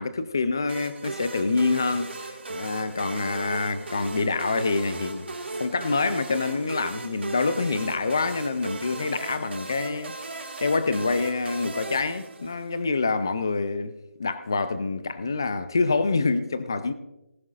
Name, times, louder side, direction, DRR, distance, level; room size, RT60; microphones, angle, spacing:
voice 1, 0.0-5.3 5.6-13.9 14.2-16.9, left 3 dB, 15° left, 0.4 m, -26 dB
sound 1, 0.7-12.9, right 3 dB, 50° right, 1.8 m, -37 dB
18.5 x 13.0 x 2.4 m
figure-of-eight pair, 175°, 8 cm